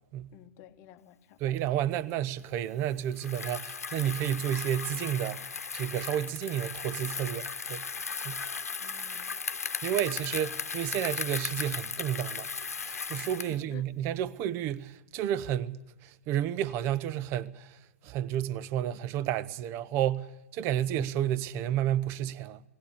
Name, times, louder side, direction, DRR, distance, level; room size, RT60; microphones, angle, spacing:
voice 1, 0.3-1.6 8.8-9.4 13.4-13.9, left 11 dB, 35° left, 1.2 m, -52 dB
voice 2, 1.4-7.9 8.2-8.4 9.8-17.8 18.0-22.6, right 11 dB, 30° right, 0.7 m, -31 dB
Bicycle, 3.1-13.6, left 5 dB, 80° left, 1.0 m, -36 dB
19.5 x 17.5 x 8.4 m
figure-of-eight pair, 120°, 8 cm